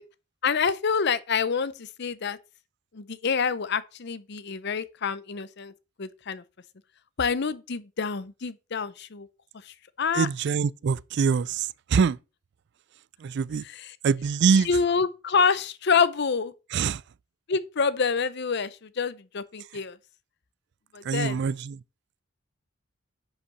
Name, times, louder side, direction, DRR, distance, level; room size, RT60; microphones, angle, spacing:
voice 1, 0.4-2.4 2.9-5.7 6.0-6.4 7.2-9.3 9.6-10.3 13.7-13.9 14.6-16.5 17.5-20.0 20.9-21.4, left 5 dB, 50° left, 0.6 m, -27 dB
voice 2, 10.1-12.2 13.2-13.6 14.0-14.7 16.7-17.0 21.0-21.8, right 6 dB, 55° right, 0.3 m, -24 dB
10.0 x 5.6 x 4.0 m
head